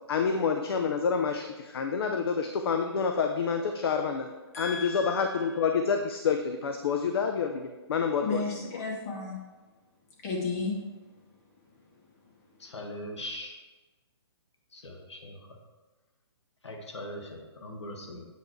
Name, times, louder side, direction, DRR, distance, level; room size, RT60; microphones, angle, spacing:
voice 1, 0.1-4.3 4.6-8.8, left 5 dB, 60° left, 6 dB, 0.6 m, -28 dB
voice 2, 4.5-5.3 8.2-9.4 10.2-10.7, left 4 dB, 35° left, -2 dB, 2.3 m, -33 dB
voice 3, 12.6-13.5 14.7-15.4 16.6-18.2, left 1 dB, 90° left, 2 dB, 1.5 m, -40 dB
8.2 x 5.5 x 4.6 m, 1.2 s
hypercardioid pair, 145°, 14 cm